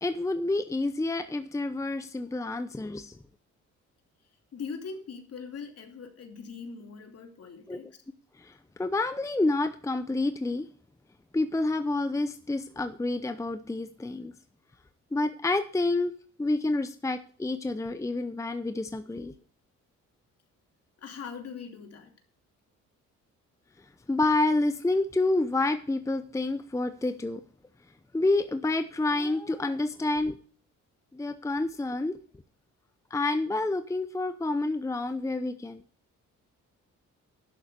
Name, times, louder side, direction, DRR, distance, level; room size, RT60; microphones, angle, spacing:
voice 1, 0.0-3.2 7.7-7.8 8.4-10.7 11.3-14.3 15.1-19.3 24.1-27.4 28.1-30.4 31.1-32.2 33.1-35.8, left 2 dB, 10° left, 11 dB, 0.7 m, -28 dB
voice 2, 4.5-8.0 21.0-22.1, left 5 dB, 55° left, 5 dB, 2.8 m, -41 dB
11.5 x 7.1 x 6.8 m, 0.44 s
cardioid pair, 90°, 30 cm